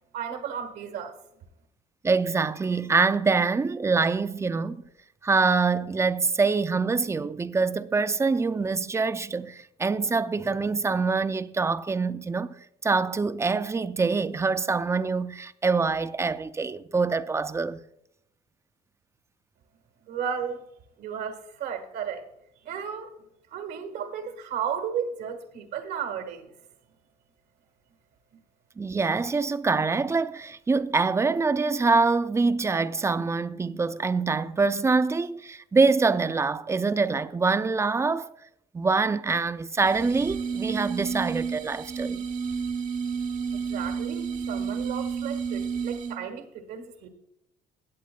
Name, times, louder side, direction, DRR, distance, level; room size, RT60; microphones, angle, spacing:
voice 1, 0.1-1.1 20.0-20.6 21.0-22.2 22.6-23.1 23.5-26.5 43.7-47.1, right 7 dB, 85° right, 1.5 m, -34 dB
voice 2, 2.0-4.8 5.2-17.8 28.8-38.3 38.7-42.3, right 4 dB, 15° right, 0.4 m, -25 dB
sound 1, 39.8-46.3, right 6 dB, 50° right, 0.8 m, -31 dB
17.0 x 8.2 x 2.2 m
cardioid pair, 110°, 17 cm